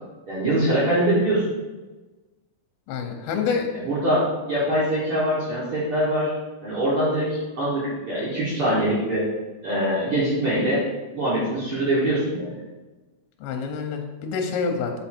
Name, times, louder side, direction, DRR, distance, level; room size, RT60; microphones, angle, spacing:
voice 1, 0.3-1.4 3.8-6.3 6.6-9.3 9.6-10.8 11.1-12.6, right 1 dB, 75° right, -10 dB, 1.2 m, -23 dB
voice 2, 2.9-3.7 13.4-14.9, left 5 dB, 80° left, 3 dB, 2.2 m, -27 dB
5.4 x 5.1 x 4.4 m, 1.2 s
omnidirectional pair, 5.0 m